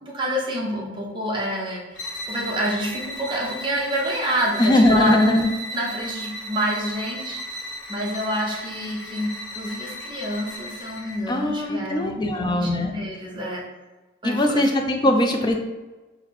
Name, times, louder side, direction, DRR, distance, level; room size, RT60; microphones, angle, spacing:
voice 1, 0.0-2.0 2.3-5.4 5.7-7.4 7.9-13.6 14.2-14.8 15.1-15.2, equal, 25° right, -3 dB, 0.8 m, -28 dB
sound 1, 1.9-11.3, equal, 80° left, 1.0 m, -35 dB
voice 2, 4.6-5.5 11.3-12.9 14.2-15.5, left 1 dB, 20° left, 4 dB, 0.4 m, -20 dB
4.1 x 2.1 x 4.1 m, 1.2 s
head